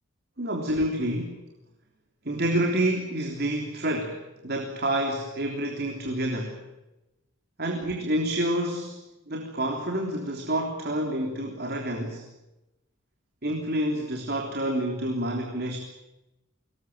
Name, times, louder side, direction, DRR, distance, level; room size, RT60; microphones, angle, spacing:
voice 1, 0.4-1.4 2.3-6.6 7.6-12.3 13.4-15.8, right 1 dB, 50° right, 2 dB, 3.5 m, -28 dB
23.5 x 20.5 x 8.8 m, 0.98 s
head